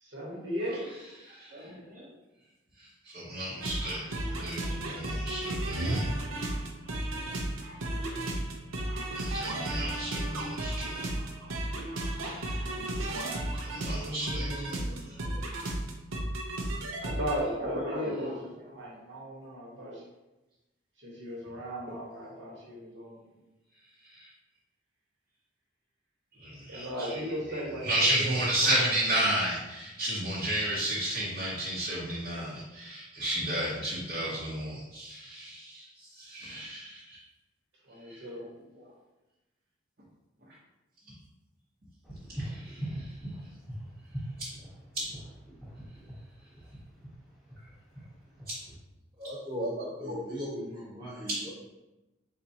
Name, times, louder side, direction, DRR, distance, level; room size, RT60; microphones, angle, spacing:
voice 1, 0.0-0.9 13.7-15.0 17.0-20.0 21.0-23.2 26.7-28.9 37.8-38.4, equal, 70° right, -3 dB, 1.1 m, -37 dB
voice 2, 0.6-2.1 2.8-6.1 6.4-6.6 7.6-7.8 8.9-11.1 11.9-12.7 13.5-14.8 15.1-15.7 17.4-18.4 18.7-18.8 24.0-24.3 26.4-37.2 38.1-38.2 38.7-38.8 42.4-43.0 44.4-44.5 44.9-45.1 48.5-48.6 49.2-50.2 51.3-51.4, right 1 dB, 45° right, -6 dB, 0.8 m, -33 dB
sound 1, 3.6-17.4, right 1 dB, 85° right, 0.6 m, -33 dB
sound 2, 42.0-48.8, right 1 dB, ahead, 0.9 m, -41 dB
voice 3, 49.2-49.7 50.0-51.5, equal, 25° right, -5 dB, 1.2 m, -38 dB
4.3 x 3.6 x 2.8 m, 1.0 s
head